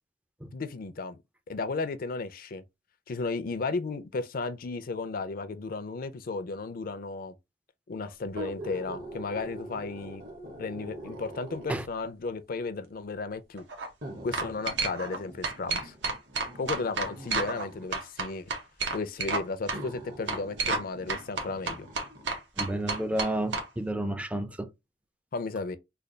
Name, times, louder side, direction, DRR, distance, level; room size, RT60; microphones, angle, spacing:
voice 1, 0.5-1.2 1.5-2.6 3.1-7.3 7.9-10.2 10.6-13.6 14.2-16.0 16.6-18.5 18.9-21.9 25.3-25.8, left 3 dB, 55° left, 0.5 m, -34 dB
sound 1, 8.2-11.9 12.8-12.9 14.0-17.9 18.9-19.0 19.7-22.4 22.8-22.9, right 1 dB, 55° right, 0.9 m, -44 dB
sound 2, 13.6-13.9 14.3-15.2 15.4-17.6 17.9-19.4 19.7-19.8 20.3-20.8 21.1-23.6, right 3 dB, 85° right, 0.9 m, -30 dB
voice 2, 22.6-24.7, right 1 dB, 10° right, 0.4 m, -31 dB
3.3 x 2.3 x 3.8 m
head